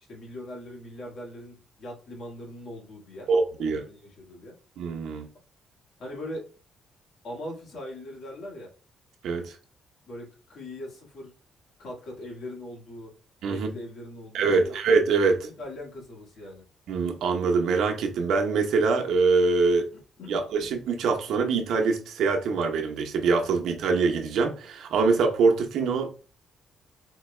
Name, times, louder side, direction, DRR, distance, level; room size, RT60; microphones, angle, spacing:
voice 1, 0.1-3.3 3.6-4.5 6.0-6.5 7.2-8.7 10.1-11.3 11.8-13.1 13.5-14.8 15.6-16.6 20.2-20.5, left 1 dB, 65° left, 1.6 m, -40 dB
voice 2, 3.3-3.8 4.8-5.3 9.2-9.6 13.4-13.7 14.3-15.5 16.9-19.9 20.3-26.1, right 4 dB, 80° right, 0.7 m, -24 dB
4.5 x 2.2 x 3.2 m
cardioid pair, 105°, 0 cm